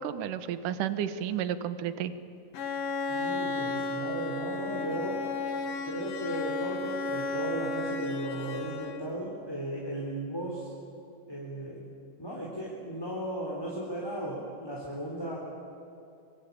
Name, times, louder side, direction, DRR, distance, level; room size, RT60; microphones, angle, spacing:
voice 1, 0.0-2.1, right 9 dB, 70° right, 11 dB, 2.5 m, -32 dB
Bowed string instrument, 2.5-9.2, left 3 dB, 55° left, 2.4 m, -33 dB
voice 2, 3.1-5.3 5.8-10.7 11.3-11.8 12.2-15.4, right 1 dB, 5° left, -4 dB, 3.5 m, -36 dB
26.0 x 22.5 x 8.6 m, 2.7 s
omnidirectional pair, 4.0 m